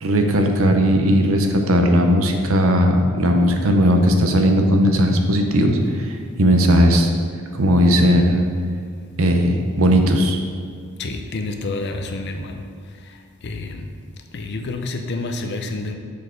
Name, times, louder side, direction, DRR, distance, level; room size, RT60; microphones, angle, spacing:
voice 1, 0.0-7.1 7.5-8.5 9.2-10.4, equal, 65° right, 4 dB, 0.7 m, -17 dB
voice 2, 5.8-6.2 11.0-13.9 14.3-15.9, left 2 dB, 50° left, 5 dB, 0.5 m, -29 dB
6.6 x 4.3 x 5.1 m, 2.2 s
head